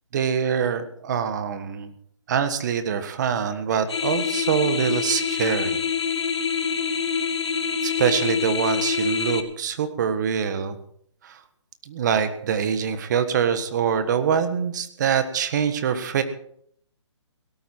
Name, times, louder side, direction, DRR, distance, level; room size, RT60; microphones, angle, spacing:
voice 1, 0.1-1.9 2.3-5.8 7.8-10.8 11.2-11.4 11.8-16.2, right 7 dB, 40° right, 10 dB, 1.5 m, -24 dB
sound 1, 3.9-9.4, left 6 dB, 65° left, 1.8 m, -25 dB
17.5 x 13.0 x 4.6 m, 0.65 s
hypercardioid pair, 155°, 15 cm